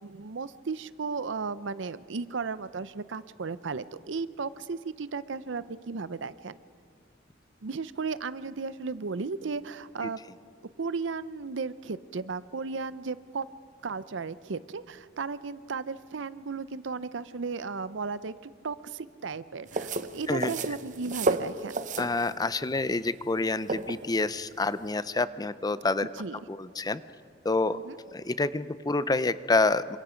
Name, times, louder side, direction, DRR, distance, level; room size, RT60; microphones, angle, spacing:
voice 1, 0.0-6.6 7.6-10.2 10.8-13.5 13.8-21.8 26.2-26.4 27.7-28.0, right 4 dB, 75° right, 15 dB, 0.6 m, -35 dB
sound 1, 19.7-24.9, right 3 dB, 45° right, 0.9 m, -32 dB
voice 2, 22.0-26.1 26.5-27.0 27.4-27.8 28.1-30.0, left 3 dB, 20° left, 15 dB, 0.5 m, -27 dB
28.0 x 25.0 x 5.1 m, 2.2 s
head